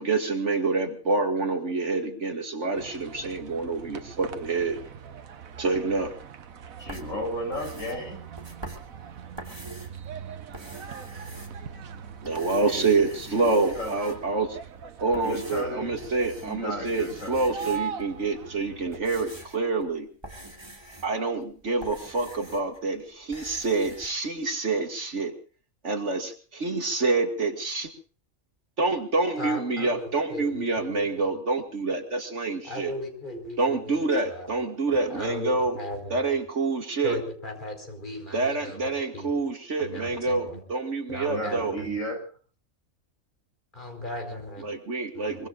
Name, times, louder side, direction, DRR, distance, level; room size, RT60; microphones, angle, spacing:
voice 1, 0.0-4.8 5.6-6.1 12.2-14.6 15.0-20.1 21.0-25.3 25.8-27.9 28.8-32.9 33.6-35.8 36.1-37.2 38.3-41.8 44.6-45.5, right 3 dB, 60° right, 4 dB, 2.6 m, -27 dB
sound 1, 2.7-19.0, right 7 dB, 85° right, 1.5 m, -41 dB
voice 2, 6.8-8.2 12.7-14.2 15.2-16.0 16.4-17.8 41.3-42.2, equal, 75° left, 3 dB, 6.8 m, -34 dB
sound 2, 6.8-10.0 10.4-11.9 12.2-14.4 14.9-16.6 16.8-18.1 18.6-22.8 23.1-24.1, right 1 dB, 20° right, 2.9 m, -45 dB
voice 3, 29.4-31.3 32.6-34.5 35.1-36.2 37.0-39.3 39.8-40.6 41.1-41.9 43.7-44.7 45.1-45.4, left 1 dB, 35° left, 4 dB, 5.1 m, -37 dB
24.0 x 23.5 x 2.6 m, 0.40 s
omnidirectional pair, 1.4 m